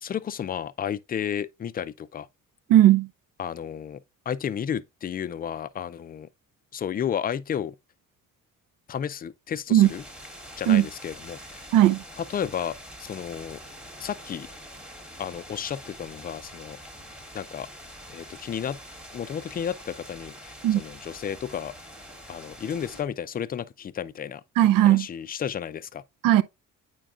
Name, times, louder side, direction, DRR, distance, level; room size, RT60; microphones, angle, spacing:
voice 1, 0.0-2.3 3.4-4.0 4.3-6.3 6.7-7.7 8.9-10.0 10.6-11.7 12.2-13.6 14.0-14.5 15.2-16.8 17.3-17.7 18.1-18.8 19.1-21.7 22.3-24.4 24.8-26.0, left 8 dB, 30° left, 0.3 m, -32 dB
voice 2, 2.7-3.1 9.7-9.9 10.7-10.9 11.7-12.0 20.6-20.8 24.6-25.1 26.2-26.4, right 13 dB, 80° right, 0.5 m, -17 dB
Distant Thunderstorm, 9.8-23.0, equal, 5° right, 1.1 m, -45 dB
9.0 x 4.5 x 2.4 m
cardioid pair, 110°, 33 cm